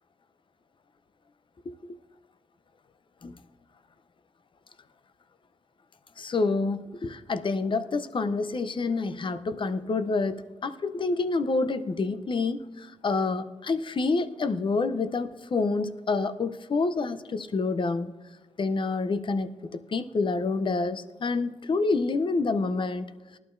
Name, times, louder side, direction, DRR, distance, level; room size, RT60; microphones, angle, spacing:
voice 1, 6.2-18.1 18.6-23.1, left 3 dB, 45° left, 11 dB, 0.6 m, -28 dB
19.5 x 11.5 x 2.6 m, 1.2 s
cardioid pair, 75°, 12 cm